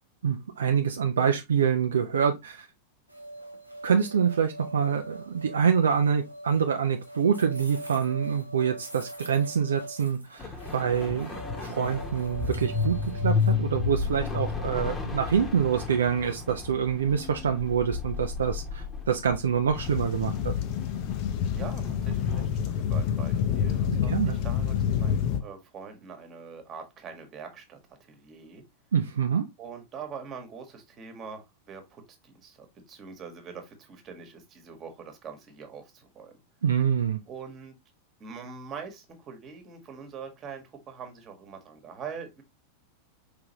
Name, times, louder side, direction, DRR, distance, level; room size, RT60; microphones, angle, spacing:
voice 1, 0.2-2.7 3.8-11.3 11.6-13.0 13.2-20.5 24.1-24.4 28.9-29.5 36.6-37.2, right 7 dB, 65° right, 0.5 m, -26 dB
sound 1, 3.1-13.5, right 1 dB, 90° right, 1.0 m, -43 dB
sound 2, 10.4-22.5, left 4 dB, 20° left, 1.1 m, -33 dB
sound 3, 19.8-25.4, left 8 dB, 45° left, 0.7 m, -28 dB
voice 2, 21.5-28.6 29.6-36.3 37.3-37.7 38.2-42.4, right 6 dB, 30° right, 1.4 m, -43 dB
5.0 x 3.5 x 2.9 m
figure-of-eight pair, 90°, 0 cm